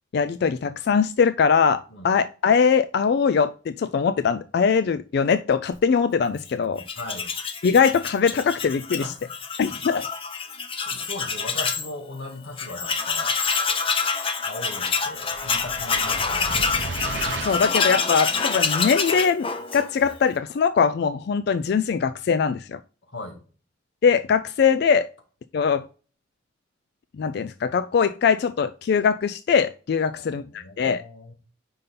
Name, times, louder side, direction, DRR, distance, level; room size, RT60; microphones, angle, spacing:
voice 1, 0.1-6.8 7.6-9.1 9.6-10.1 17.4-22.8 24.0-25.1 25.5-25.9 27.2-31.0, left 6 dB, 60° left, 0.3 m, -21 dB
Tools, 6.8-11.9 12.2-12.3 12.6-20.2, left 5 dB, 30° left, 0.6 m, -26 dB
voice 2, 7.0-7.3 8.9-9.3 9.7-9.8 10.8-13.4 14.4-16.7 23.1-23.4 30.1-31.3, left 2 dB, 85° left, 1.9 m, -38 dB
sound 1, 15.2-17.9, right 4 dB, 70° right, 0.5 m, -34 dB
5.4 x 4.2 x 5.2 m
head